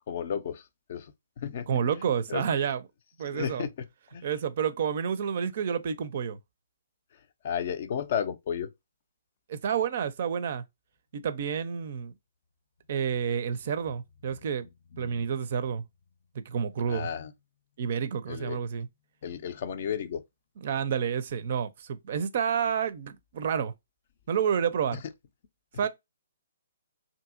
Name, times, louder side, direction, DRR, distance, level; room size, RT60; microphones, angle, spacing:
voice 1, 0.1-1.7 2.3-2.4 3.3-4.2 7.4-8.7 14.9-15.3 16.9-17.3 18.3-18.6 19.2-20.2 24.9-25.0, left 8 dB, 45° left, 0.4 m, -33 dB
voice 2, 1.7-2.8 3.2-3.7 4.2-6.4 9.5-10.6 11.1-12.1 12.9-14.7 15.0-15.8 16.3-17.1 17.8-18.9 20.6-23.7 24.3-25.0 25.8-25.9, right 7 dB, 50° right, 0.4 m, -29 dB
2.7 x 2.6 x 2.4 m
figure-of-eight pair, 130°, 0 cm